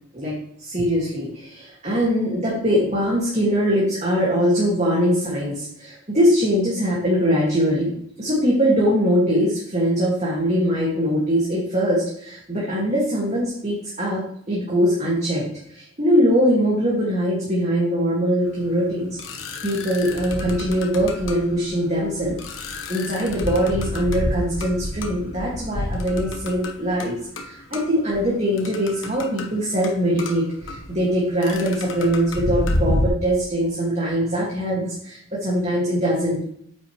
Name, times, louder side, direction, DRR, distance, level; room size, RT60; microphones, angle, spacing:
voice 1, 0.1-36.4, equal, 35° right, -5 dB, 2.2 m, -22 dB
sound 1, 18.5-33.1, left 1 dB, 80° left, 1.3 m, -30 dB
9.1 x 8.5 x 3.3 m, 0.66 s
head